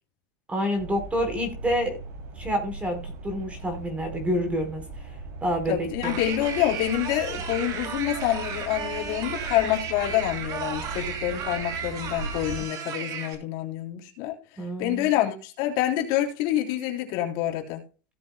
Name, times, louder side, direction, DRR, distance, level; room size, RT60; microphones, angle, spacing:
voice 1, 0.5-2.0 2.4-5.0 5.4-6.2 14.6-15.1, equal, 15° right, 4.1 m, -28 dB
sound 1, 0.7-12.6, right 3 dB, 55° right, 6.2 m, -39 dB
voice 2, 5.7-14.3 14.8-17.8, left 13 dB, 55° left, 3.3 m, -27 dB
sound 2, 6.0-13.3, right 7 dB, 40° right, 2.6 m, -34 dB
17.0 x 7.7 x 2.2 m
supercardioid pair, 145°, 10 cm